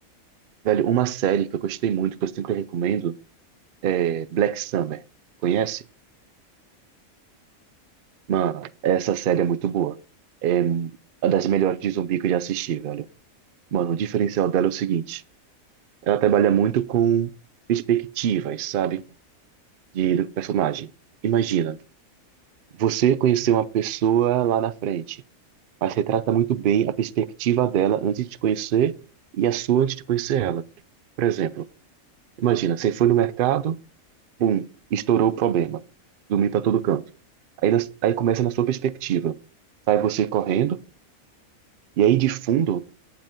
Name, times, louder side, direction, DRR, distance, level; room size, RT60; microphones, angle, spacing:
voice 1, 0.6-3.1 3.8-5.0 5.4-5.8 8.3-10.0 10.4-10.9 11.2-13.1 13.7-15.2 16.0-17.3 17.7-19.0 19.9-20.9 21.2-21.8 22.8-25.2 25.8-28.9 29.3-30.6 31.2-31.6 32.4-33.8 34.4-34.7 34.9-35.8 36.3-37.0 37.6-39.3 39.9-40.8 42.0-42.8, right 10 dB, 80° right, 0.4 m, -22 dB
9.2 x 7.6 x 3.6 m
omnidirectional pair, 1.5 m